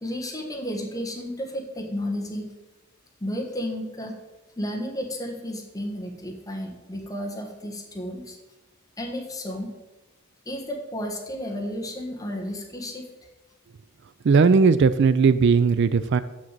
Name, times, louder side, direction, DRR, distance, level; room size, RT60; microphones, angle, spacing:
voice 1, 0.0-2.4 3.2-4.1 4.6-8.4 9.0-9.7 10.4-13.0, equal, 15° left, 0 dB, 1.4 m, -32 dB
voice 2, 14.2-16.2, right 5 dB, 50° right, 13 dB, 0.3 m, -18 dB
7.2 x 6.4 x 7.4 m, 1.1 s
head